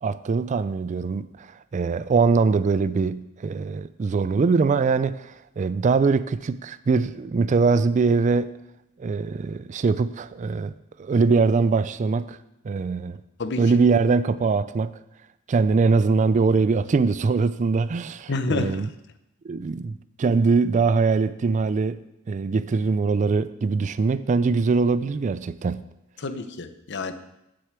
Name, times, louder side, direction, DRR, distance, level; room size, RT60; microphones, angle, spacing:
voice 1, 0.0-8.5 9.0-10.7 11.0-12.4 12.6-13.2 13.6-14.9 15.5-18.9 19.4-22.0 22.3-25.8, right 4 dB, 35° right, 0.3 m, -22 dB
voice 2, 13.4-13.7 18.3-18.8 26.2-27.1, left 3 dB, 60° left, 0.8 m, -28 dB
7.8 x 6.6 x 8.1 m
head